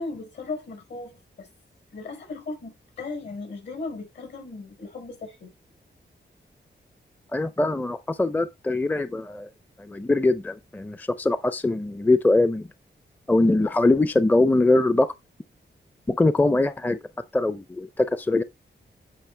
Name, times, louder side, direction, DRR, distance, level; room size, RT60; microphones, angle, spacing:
voice 1, 0.0-1.5 1.9-5.5, left 3 dB, 75° left, 5.2 m, -36 dB
voice 2, 7.3-9.5 9.8-12.7 13.3-15.1 16.1-17.0 17.3-18.4, left 2 dB, 10° left, 0.5 m, -22 dB
9.2 x 5.0 x 3.3 m
wide cardioid pair, 130°, 19 cm